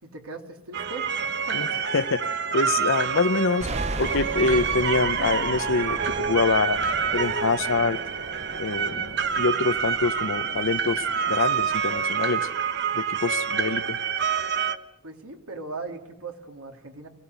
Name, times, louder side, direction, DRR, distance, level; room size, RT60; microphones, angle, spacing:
voice 1, 0.0-1.7 15.0-17.1, right 3 dB, 90° right, 3.0 m, -39 dB
sound 1, 0.7-14.8, right 6 dB, 50° right, 1.1 m, -27 dB
voice 2, 1.9-2.2 2.5-3.7 4.0-6.8 7.1-8.0 8.6-12.5 12.9-14.0, left 4 dB, 65° left, 0.7 m, -25 dB
sound 2, 3.6-12.1, right 2 dB, 30° right, 0.8 m, -37 dB
26.0 x 16.5 x 8.1 m
head